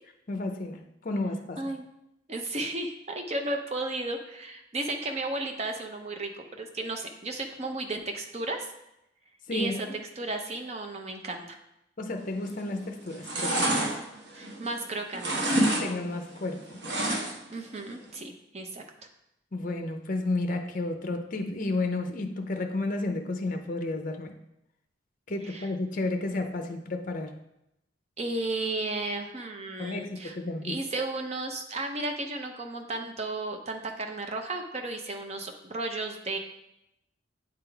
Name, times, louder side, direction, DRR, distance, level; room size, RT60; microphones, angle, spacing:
voice 1, 0.3-1.6 9.5-10.0 12.0-13.8 15.7-16.8 19.5-24.3 25.3-27.4 29.8-30.8, left 2 dB, 45° left, 6 dB, 0.6 m, -32 dB
voice 2, 2.3-8.7 9.5-9.7 10.2-11.6 14.3-15.6 16.0-16.1 17.2-18.8 25.4-25.7 28.2-30.4 30.6-36.4, right 2 dB, 35° right, 4 dB, 0.6 m, -34 dB
sound 1, 12.4-12.8 13.1-14.8 15.1-15.9 16.1-17.5 17.9-18.0, right 1 dB, 60° right, 1.0 m, -27 dB
8.8 x 3.8 x 3.4 m, 0.85 s
head